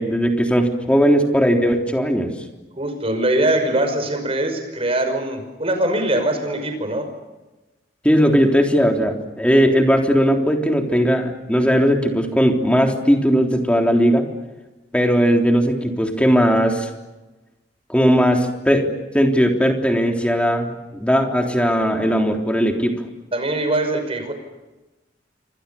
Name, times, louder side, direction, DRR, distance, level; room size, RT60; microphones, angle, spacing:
voice 1, 0.0-2.3 8.0-14.2 14.9-16.9 17.9-22.9, equal, 5° left, 3 dB, 3.5 m, -18 dB
voice 2, 2.8-7.1 23.3-24.3, right 1 dB, 35° right, 7 dB, 5.8 m, -22 dB
28.5 x 25.5 x 7.1 m, 1.1 s
head